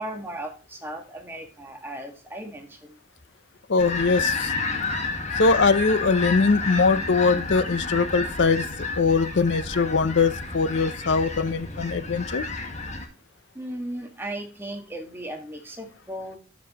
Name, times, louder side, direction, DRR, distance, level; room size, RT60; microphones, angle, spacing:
voice 1, 0.0-3.0 13.5-16.4, right 1 dB, 10° right, 1.6 m, -36 dB
voice 2, 3.7-4.5 5.3-12.4, left 4 dB, 65° left, 0.6 m, -22 dB
sound 1, 3.8-13.1, left 3 dB, 35° left, 1.5 m, -30 dB
12.5 x 5.2 x 2.9 m
head